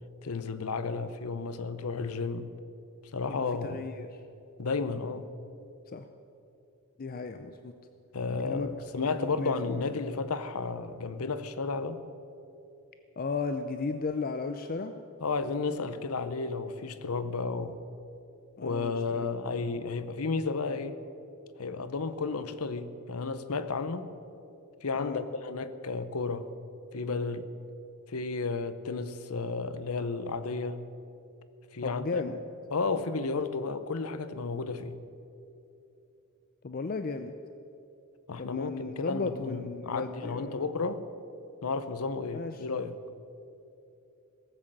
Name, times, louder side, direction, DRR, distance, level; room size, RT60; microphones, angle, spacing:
voice 1, 0.2-2.5 3.1-3.9 4.6-5.3 8.1-12.0 15.2-17.8 18.6-21.0 21.6-24.1 24.8-26.5 26.9-27.5 28.1-30.8 31.7-32.2 32.7-35.0 38.3-41.0 41.6-42.9, left 4 dB, 80° left, 12 dB, 0.8 m, -32 dB
voice 2, 3.3-4.2 5.9-6.1 7.0-7.7 8.4-8.7 8.9-9.9 13.2-15.0 18.6-19.3 19.5-19.7 25.0-25.2 31.8-32.4 36.6-37.3 38.4-40.6 42.3-42.6, left 4 dB, 40° left, 8 dB, 0.5 m, -35 dB
17.5 x 7.6 x 7.4 m, 2.7 s
head